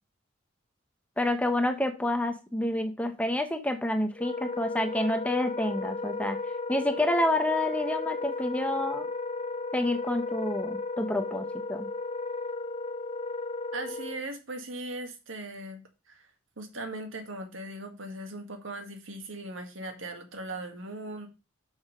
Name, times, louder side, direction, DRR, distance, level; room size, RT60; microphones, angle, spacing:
voice 1, 1.2-6.4 6.7-9.1 9.7-11.9, left 1 dB, 5° left, 7 dB, 0.9 m, -28 dB
Wind instrument woodwind instrument, 4.1-14.2, left 3 dB, 30° left, 0.7 m, -34 dB
voice 2, 13.7-15.8 16.1-16.2 16.6-21.3, right 2 dB, 80° right, 5 dB, 2.0 m, -39 dB
6.5 x 5.5 x 6.5 m, 0.29 s
head